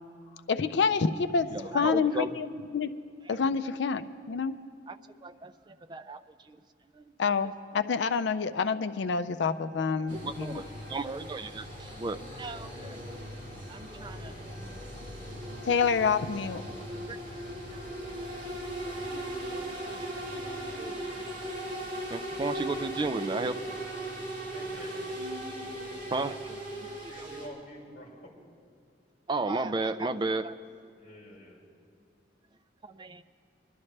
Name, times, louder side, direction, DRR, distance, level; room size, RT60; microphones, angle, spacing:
voice 1, 0.5-2.9 3.3-4.5 7.2-10.6 15.6-16.6, left 5 dB, 70° left, 11 dB, 0.4 m, -28 dB
voice 2, 1.5-2.3 3.3-3.4 4.9-5.0 5.2-6.6 6.9-7.0 10.1-13.0 13.7-14.3 17.1-17.3 17.7-17.8 18.9-19.3 19.5-20.0 20.8-20.9 22.1-23.6 26.1-27.1 29.3-30.6 32.8-33.2, right 3 dB, 25° right, 10 dB, 0.3 m, -35 dB
sound 1, 9.4-24.2, equal, 10° left, 3.2 m, -57 dB
sound 2, 10.1-27.5, right 1 dB, 45° right, 2.4 m, -38 dB
voice 3, 24.5-25.1 27.0-28.3 31.0-31.6, left 1 dB, 40° left, -3 dB, 2.6 m, -48 dB
21.5 x 12.0 x 3.3 m, 2.2 s
head